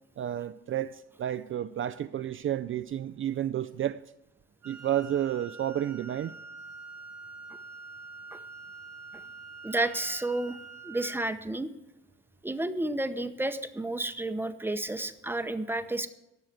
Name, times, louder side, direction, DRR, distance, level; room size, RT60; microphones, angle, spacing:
voice 1, 0.2-4.0 4.6-6.3, right 11 dB, 45° right, 0.4 m, -31 dB
Wind instrument woodwind instrument, 4.6-11.3, right 4 dB, 65° right, 1.7 m, -46 dB
voice 2, 9.6-10.6 10.8-11.7 12.4-16.1, right 2 dB, 5° right, 0.7 m, -31 dB
11.0 x 6.3 x 8.7 m
cardioid pair, 90°, 30 cm